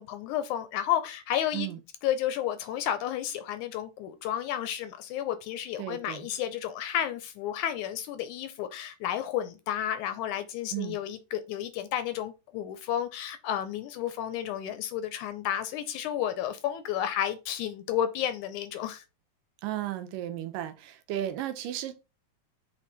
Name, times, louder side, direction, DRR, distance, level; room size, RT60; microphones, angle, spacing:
voice 1, 0.0-1.7 2.0-19.0, left 10 dB, 80° left, 1.9 m, -32 dB
voice 2, 5.8-6.3 10.7-11.0 19.6-21.9, right 12 dB, 85° right, 2.5 m, -34 dB
7.5 x 3.6 x 4.0 m
omnidirectional pair, 3.8 m